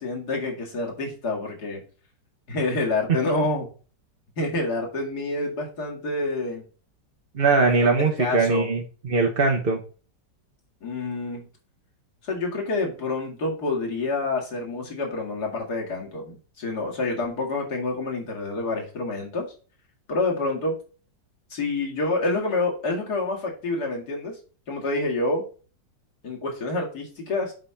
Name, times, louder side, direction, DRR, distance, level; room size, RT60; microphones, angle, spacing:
voice 1, 0.0-1.8 2.5-3.7 4.4-6.6 7.7-8.7 10.8-11.5 12.2-19.5 20.1-20.8 21.5-24.4 24.7-25.4 26.2-27.5, left 2 dB, 65° left, 0 dB, 2.8 m, -28 dB
voice 2, 7.3-9.8, right 4 dB, 40° right, 2 dB, 1.0 m, -21 dB
7.8 x 3.5 x 5.8 m, 0.37 s
omnidirectional pair, 1.9 m